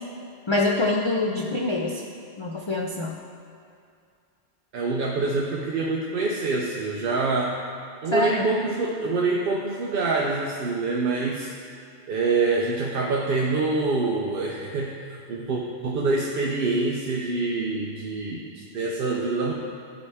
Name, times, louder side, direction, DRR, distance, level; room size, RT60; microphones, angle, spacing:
voice 1, 0.5-2.0 2.4-3.2 8.1-8.4, left 2 dB, 50° left, -1 dB, 0.3 m, -25 dB
voice 2, 4.7-7.6 8.0-11.5 12.1-19.5, right 3 dB, 60° right, -2 dB, 0.8 m, -26 dB
12.0 x 4.6 x 3.4 m, 2.4 s
omnidirectional pair, 1.2 m